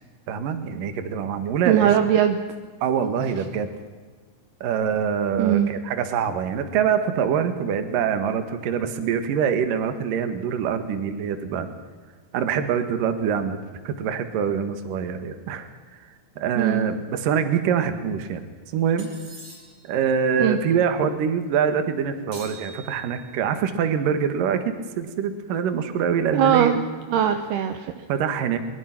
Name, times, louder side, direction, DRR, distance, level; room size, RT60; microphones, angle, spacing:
voice 1, 0.3-1.9 2.8-3.7 4.6-11.7 12.3-13.6 13.8-15.7 16.4-18.4 18.7-19.1 19.8-26.8 28.1-28.6, right 7 dB, 60° right, 9 dB, 2.5 m, -24 dB
voice 2, 1.7-2.4 5.4-5.7 16.6-16.9 20.4-20.6 26.3-26.8 27.1-28.1, right 10 dB, 75° right, 7 dB, 2.4 m, -20 dB
sound 1, 19.0-19.9 22.3-23.4, right 2 dB, 35° right, 9.0 m, -44 dB
23.0 x 22.5 x 6.0 m, 1.5 s
omnidirectional pair, 5.8 m